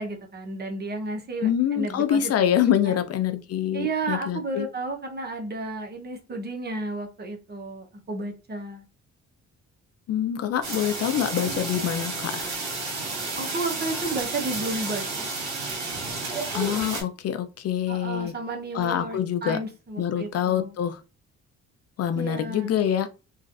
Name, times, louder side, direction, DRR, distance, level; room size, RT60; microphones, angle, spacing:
voice 1, 0.0-2.3 2.9-3.0 3.7-8.8 13.3-15.1 17.9-20.7 22.1-22.8, right 2 dB, 35° right, 0.9 m, -32 dB
voice 2, 1.4-4.7 10.1-12.5 16.5-18.3 18.7-19.6 20.0-21.0 22.0-23.1, left 10 dB, 55° left, 0.4 m, -25 dB
sound 1, 10.6-17.0, right 3 dB, 65° right, 1.6 m, -31 dB
3.1 x 2.5 x 2.5 m
cardioid pair, 90°, 30 cm